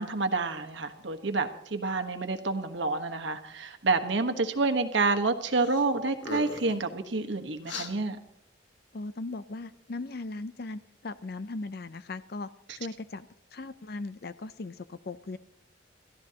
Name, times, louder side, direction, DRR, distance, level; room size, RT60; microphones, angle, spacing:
voice 1, 0.0-8.2, right 3 dB, 70° right, 7 dB, 1.3 m, -28 dB
sound 1, 5.6-5.9 6.2-6.8 7.6-7.9, left 3 dB, 75° left, 1.6 m, -37 dB
voice 2, 8.9-13.3 13.5-15.4, left 3 dB, 50° left, 14 dB, 0.5 m, -38 dB
28.0 x 14.0 x 2.9 m, 0.78 s
head